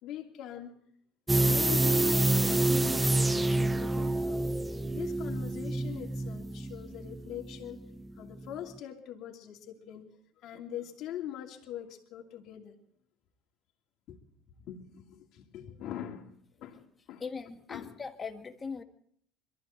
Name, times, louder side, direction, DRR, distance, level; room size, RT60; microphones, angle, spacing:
voice 1, 0.0-0.8 1.5-4.5 4.9-10.1 10.4-12.7 14.1-14.2 14.6-17.2 17.7-17.9, left 11 dB, 60° left, 1 dB, 2.8 m, -42 dB
sound 1, 1.3-8.1 8.4-8.5, right 2 dB, 10° right, 0.6 m, -28 dB
voice 2, 17.2-18.8, left 5 dB, 25° left, 6 dB, 1.6 m, -40 dB
22.5 x 14.0 x 4.5 m, 0.66 s
supercardioid pair, 100°, 0 cm